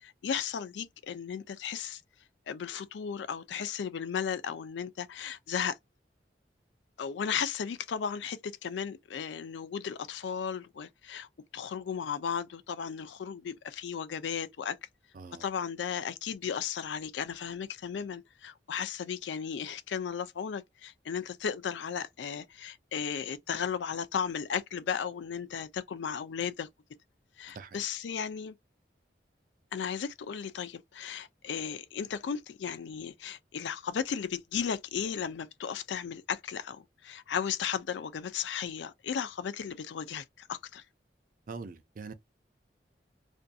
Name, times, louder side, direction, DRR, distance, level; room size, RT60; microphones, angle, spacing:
voice 1, 0.0-2.0 2.5-5.8 7.0-11.3 11.5-14.8 15.4-26.7 27.4-28.6 29.7-40.8, left 7 dB, 85° left, 0.4 m, -35 dB
voice 2, 15.1-15.5 27.5-27.8 41.5-42.1, right 4 dB, 50° right, 0.4 m, -43 dB
2.5 x 2.5 x 2.3 m
head